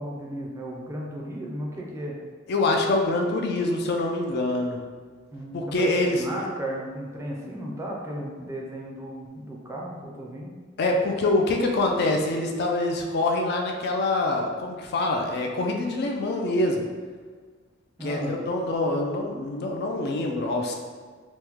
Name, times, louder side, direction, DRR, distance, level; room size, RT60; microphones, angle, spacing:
voice 1, 0.0-2.2 5.3-10.6 18.0-18.4, equal, 15° right, -3 dB, 0.4 m, -34 dB
voice 2, 2.5-4.8 5.5-6.2 10.8-16.8 18.0-20.7, left 2 dB, 55° left, 2 dB, 0.4 m, -25 dB
3.0 x 2.1 x 3.4 m, 1.5 s
head